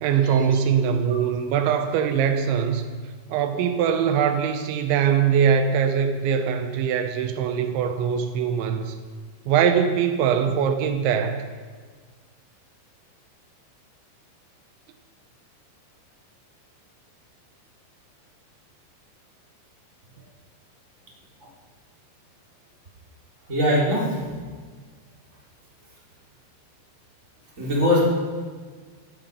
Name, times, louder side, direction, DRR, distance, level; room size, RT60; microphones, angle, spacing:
voice 1, 0.0-2.9 3.3-8.9 9.5-11.4, right 7 dB, 90° right, 7 dB, 3.3 m, -22 dB
voice 2, 23.5-24.4 27.6-28.1, left 1 dB, 15° right, -6 dB, 4.3 m, -22 dB
16.0 x 13.5 x 5.4 m, 1.5 s
omnidirectional pair, 5.1 m